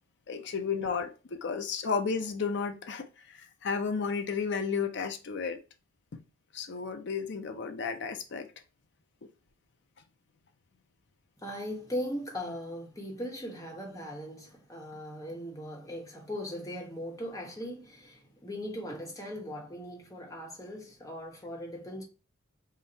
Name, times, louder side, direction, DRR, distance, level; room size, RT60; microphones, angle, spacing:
voice 1, 0.3-5.6 6.1-6.2 6.5-8.5 9.2-9.3, left 5 dB, 60° left, 0.5 m, -33 dB
voice 2, 11.4-22.0, equal, 15° left, 1.0 m, -39 dB
3.8 x 2.1 x 4.3 m
head